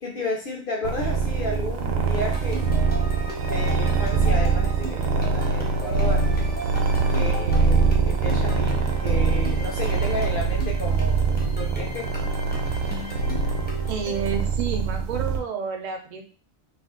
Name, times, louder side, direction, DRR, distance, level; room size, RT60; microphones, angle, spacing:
voice 1, 0.0-2.7 3.4-6.3 7.1-12.1, left 2 dB, 60° left, 0 dB, 0.6 m, -32 dB
sound 1, 0.8-15.4, right 4 dB, 80° right, 1.0 m, -23 dB
sound 2, 2.1-14.5, equal, 15° left, 0.4 m, -38 dB
voice 2, 13.9-16.2, right 6 dB, 60° right, 4 dB, 0.4 m, -30 dB
2.5 x 2.4 x 3.6 m, 0.36 s
omnidirectional pair, 1.4 m